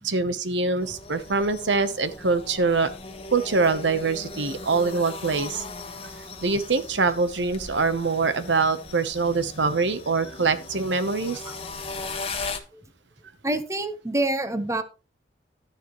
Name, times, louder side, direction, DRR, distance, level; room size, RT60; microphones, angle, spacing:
voice 1, 0.0-2.9 3.3-5.6 6.4-11.4, right 4 dB, 75° right, 11 dB, 1.0 m, -24 dB
sound 1, 0.8-12.6, left 3 dB, 30° left, 1.4 m, -38 dB
voice 2, 12.4-12.8 13.4-14.8, right 2 dB, 15° right, 9 dB, 1.0 m, -28 dB
12.0 x 10.0 x 3.1 m, 0.32 s
head